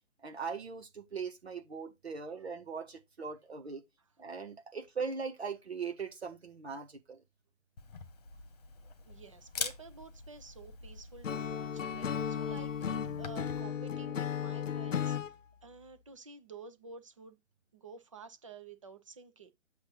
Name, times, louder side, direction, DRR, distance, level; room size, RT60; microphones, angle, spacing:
voice 1, 0.2-3.8 4.2-7.2 13.0-13.2, right 5 dB, 55° right, 1.3 m, -40 dB
Camera, 7.8-13.6, left 5 dB, 30° left, 1.3 m, -45 dB
voice 2, 9.0-15.2 15.6-17.4 17.7-19.5, right 4 dB, 25° right, 0.7 m, -51 dB
Acoustic guitar / Strum, 11.2-15.3, left 8 dB, 80° left, 0.5 m, -35 dB
7.9 x 2.7 x 5.5 m
figure-of-eight pair, 140°, 38 cm